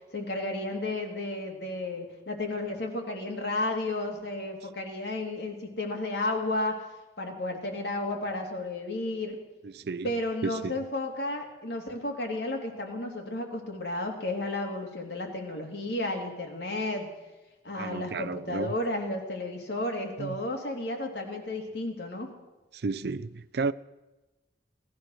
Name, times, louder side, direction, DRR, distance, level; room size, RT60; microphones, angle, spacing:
voice 1, 0.1-6.9 7.2-9.4 10.0-17.1 17.6-22.3, left 2 dB, 70° left, 2.7 m, -32 dB
voice 2, 9.6-10.7 17.8-18.7 20.2-20.4 22.7-23.7, right 4 dB, 60° right, 0.5 m, -33 dB
18.5 x 12.0 x 6.4 m
head